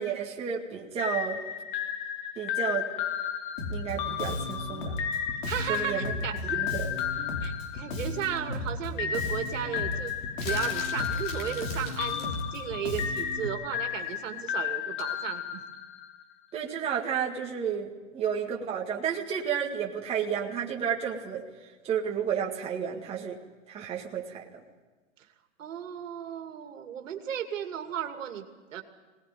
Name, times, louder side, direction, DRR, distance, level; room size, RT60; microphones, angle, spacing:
voice 1, 0.0-1.4 2.4-2.9 3.7-5.0 5.7-6.1 6.5-6.9 16.5-21.4 21.8-23.4 23.7-24.6, right 8 dB, 15° right, -2 dB, 2.0 m, -31 dB
sound 1, 1.0-8.4 9.0-16.2, left 9 dB, 40° left, 1.5 m, -34 dB
Bass guitar, 3.6-13.5, left 2 dB, 80° left, 4.2 m, -35 dB
voice 2, 5.5-6.6 7.4-10.1 10.4-15.6 25.6-28.8, right 9 dB, 70° right, 5 dB, 2.6 m, -35 dB
sound 2, 10.4-12.5 15.0-15.2, left 2 dB, 25° left, 3.1 m, -42 dB
22.5 x 19.0 x 9.4 m, 1.3 s
hypercardioid pair, 155°, 39 cm